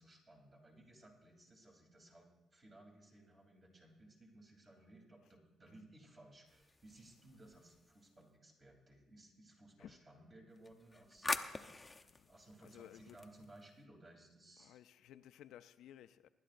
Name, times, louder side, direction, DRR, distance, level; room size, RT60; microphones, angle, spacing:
voice 1, 0.0-11.7 12.2-14.8, right 1 dB, 30° right, 3.0 m, -60 dB
sound 1, 6.5-8.2 10.5-13.8, left 3 dB, 20° left, 0.7 m, -45 dB
voice 2, 11.9-12.3 12.6-13.2 14.6-16.3, left 11 dB, 80° left, 0.4 m, -57 dB
24.5 x 11.5 x 2.5 m
cardioid pair, 90°, 0 cm